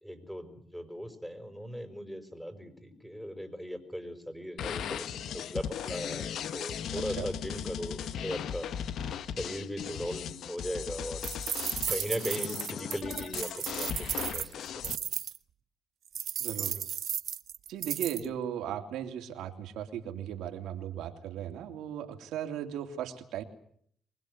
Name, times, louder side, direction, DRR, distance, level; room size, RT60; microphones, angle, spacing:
voice 1, 0.0-8.7 9.3-11.2 11.9-14.1 14.3-14.5 14.8-15.0, equal, 5° left, 10 dB, 5.4 m, -38 dB
sound 1, 4.6-15.0, left 8 dB, 70° left, 1.2 m, -37 dB
sound 2, 11.2-15.4 16.2-18.3, right 10 dB, 65° right, 0.9 m, -34 dB
voice 2, 16.4-16.8 17.7-23.4, right 10 dB, 85° right, 5 dB, 2.9 m, -37 dB
24.5 x 20.5 x 8.1 m, 0.63 s
cardioid pair, 90°, 0 cm